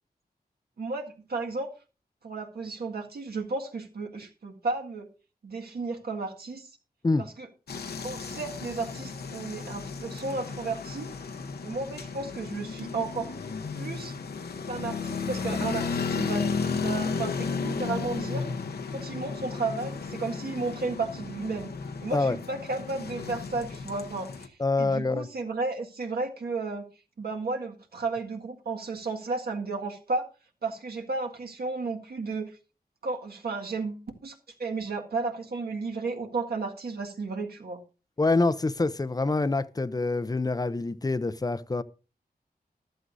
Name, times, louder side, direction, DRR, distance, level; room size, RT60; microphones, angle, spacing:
voice 1, 0.8-1.7 2.2-5.1 5.4-6.7 7.2-7.5 8.0-11.1 11.6-13.3 13.7-14.2 14.6-18.5 18.9-21.7 22.0-26.9 27.2-30.3 30.6-32.6 33.0-37.8, right 3 dB, 75° right, 1.8 m, -33 dB
sound 1, 7.7-24.5, left 5 dB, 80° left, 1.0 m, -34 dB
voice 2, 24.6-25.3 38.2-41.8, left 3 dB, 25° left, 0.5 m, -26 dB
14.0 x 12.5 x 2.6 m
wide cardioid pair, 110°, 16 cm